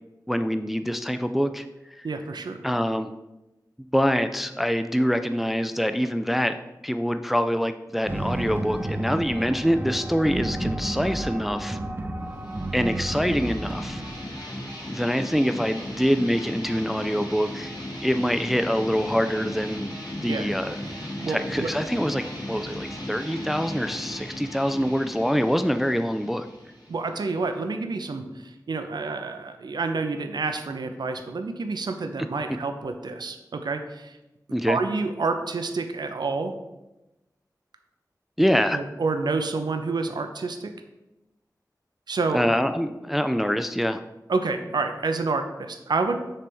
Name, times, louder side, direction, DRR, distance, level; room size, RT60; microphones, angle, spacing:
voice 1, 0.3-2.1 2.6-3.1 3.9-6.6 6.8-11.8 12.7-14.0 14.9-17.7 18.0-19.9 20.2-20.8 21.3-26.5 34.5-34.8 38.4-38.8 42.3-44.0, equal, 5° right, 8 dB, 0.3 m, -25 dB
voice 2, 2.0-2.6 20.2-20.5 21.2-21.7 26.9-34.2 34.7-36.5 38.7-40.7 42.1-42.4 44.3-46.2, right 3 dB, 80° right, 6 dB, 0.6 m, -28 dB
sound 1, 8.1-14.2, right 1 dB, 25° right, 0.8 m, -31 dB
sound 2, 12.3-27.7, equal, 55° left, 2.5 m, -37 dB
6.4 x 3.3 x 6.0 m, 0.97 s
wide cardioid pair, 80°, 7 cm